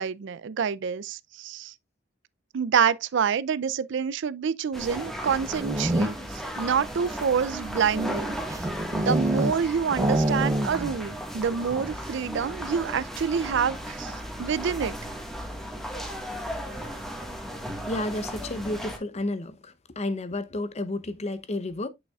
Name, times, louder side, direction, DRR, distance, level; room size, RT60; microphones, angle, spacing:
voice 1, 0.0-1.7 2.5-6.1 6.6-8.3 8.9-14.9, right 7 dB, 65° right, 0.4 m, -27 dB
sound 1, 4.7-19.0, equal, ahead, 1.5 m, -36 dB
sound 2, 5.4-6.4 7.1-9.6 9.9-11.0 11.3-11.4 11.7-12.0, right 1 dB, 15° right, 0.6 m, -27 dB
voice 2, 17.9-21.9, left 2 dB, 35° left, 0.7 m, -31 dB
8.0 x 6.4 x 2.3 m
head